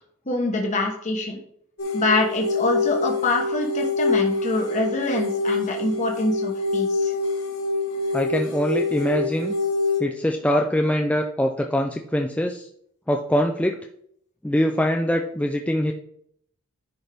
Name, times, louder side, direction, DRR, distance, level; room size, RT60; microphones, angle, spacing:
voice 1, 0.3-1.4 1.9-7.1, left 2 dB, 35° left, 1 dB, 1.0 m, -25 dB
sound 1, 1.8-10.0, left 3 dB, 65° left, 1.5 m, -25 dB
voice 2, 8.1-9.5 10.0-12.7 13.1-13.8 14.4-15.9, equal, 5° left, 3 dB, 0.3 m, -23 dB
10.5 x 4.4 x 3.4 m, 0.67 s
head